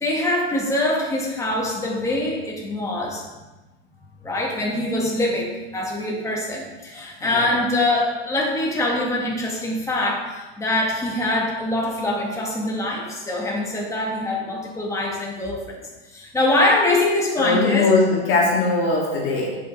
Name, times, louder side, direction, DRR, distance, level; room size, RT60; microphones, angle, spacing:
voice 1, 0.0-3.2 4.2-15.8 16.1-17.9, left 1 dB, 10° left, -3 dB, 1.8 m, -23 dB
voice 2, 7.2-7.5 17.4-19.6, left 3 dB, 40° left, -5 dB, 2.9 m, -20 dB
10.5 x 5.9 x 3.6 m, 1.1 s
supercardioid pair, 130°, 31 cm